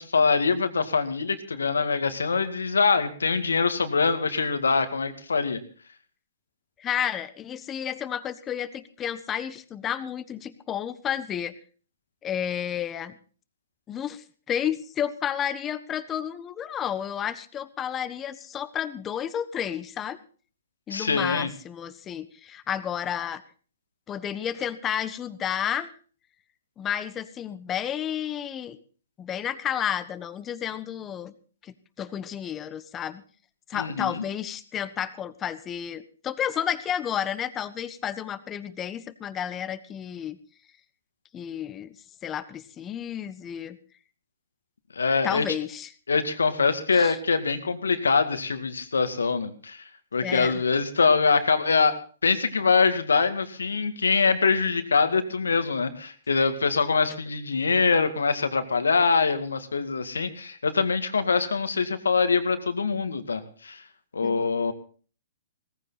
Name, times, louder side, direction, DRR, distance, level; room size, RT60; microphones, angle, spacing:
voice 1, 0.0-5.6 20.9-21.5 33.7-34.2 44.9-45.4 46.1-49.8 50.1-63.8 64.1-64.7, left 4 dB, 90° left, 10 dB, 2.1 m, -24 dB
voice 2, 6.8-11.5 12.2-13.2 13.9-20.2 20.9-23.4 24.1-25.9 26.8-28.8 29.2-31.3 31.6-33.2 33.7-40.4 41.3-41.9 42.2-43.8 45.2-45.9 46.9-47.2 50.2-50.6 64.2-64.4, left 9 dB, 20° left, 14 dB, 1.2 m, -31 dB
18.0 x 15.0 x 4.1 m, 0.40 s
hypercardioid pair, 130°, 0 cm